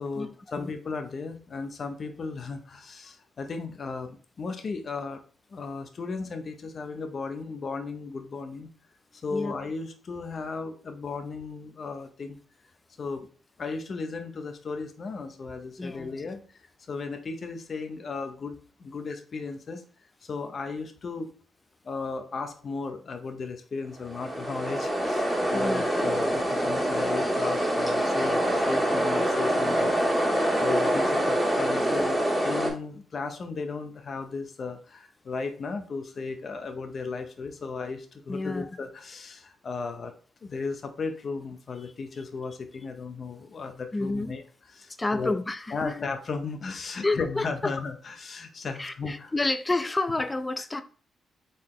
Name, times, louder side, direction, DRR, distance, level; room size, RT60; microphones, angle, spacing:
voice 1, 0.0-5.2 5.5-8.7 9.1-12.4 13.0-13.3 13.6-19.8 20.2-21.3 21.8-30.2 30.6-40.1 40.4-45.4 45.7-49.3, left 4 dB, 50° left, 0.7 m, -35 dB
voice 2, 15.8-16.1 25.5-26.1 38.3-38.6 43.9-44.3 45.0-46.0 47.0-47.7 48.8-50.8, left 2 dB, 20° left, 0.5 m, -29 dB
sound 1, 24.0-32.7, right 1 dB, 5° right, 1.9 m, -25 dB
4.0 x 3.9 x 3.1 m
cardioid pair, 75°, 0 cm